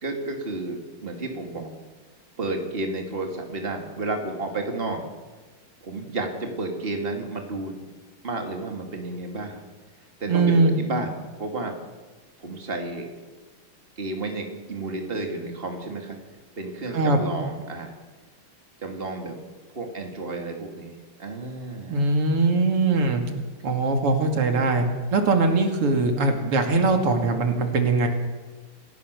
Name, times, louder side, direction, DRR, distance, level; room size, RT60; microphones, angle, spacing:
voice 1, 0.0-1.7 2.4-5.0 5.8-7.8 8.2-9.6 10.2-11.8 12.4-13.1 14.0-16.2 16.6-17.9 18.8-19.4 19.7-22.1, right 2 dB, 25° right, 3 dB, 2.7 m, -31 dB
voice 2, 10.3-10.8 16.9-17.2 21.9-23.2 23.6-28.1, right 3 dB, 90° right, 4 dB, 3.5 m, -21 dB
27.5 x 16.5 x 6.9 m, 1.3 s
omnidirectional pair, 2.4 m